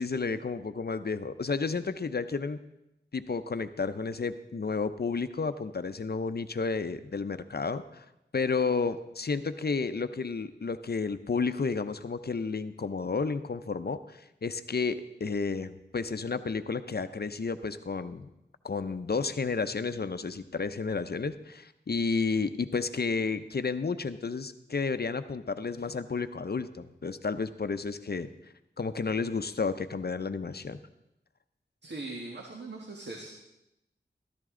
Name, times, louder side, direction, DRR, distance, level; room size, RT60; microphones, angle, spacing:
voice 1, 0.0-2.6 3.1-8.0 8.3-18.3 18.6-28.3 28.8-30.8, left 4 dB, 60° left, 11 dB, 0.6 m, -31 dB
voice 2, 31.8-33.3, right 2 dB, 70° right, 1 dB, 1.5 m, -40 dB
14.0 x 13.5 x 3.8 m, 0.87 s
wide cardioid pair, 65°, 19 cm